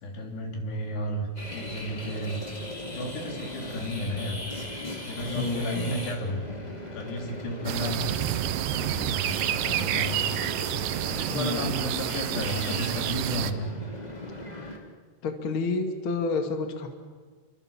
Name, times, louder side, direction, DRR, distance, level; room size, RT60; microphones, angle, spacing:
voice 1, 0.0-2.4 2.9-4.4 5.1-6.5 6.9-8.0 8.7-10.3 11.1-13.7, equal, 75° left, 2 dB, 5.5 m, -33 dB
sound 1, 1.4-14.8, left 1 dB, 10° left, 2.3 m, -39 dB
voice 2, 5.3-6.0 11.3-11.7 15.2-16.9, left 4 dB, 40° left, 5 dB, 2.4 m, -29 dB
sound 2, 7.6-13.5, right 11 dB, 70° right, 2.1 m, -29 dB
28.5 x 24.5 x 7.3 m, 1.5 s
omnidirectional pair, 4.8 m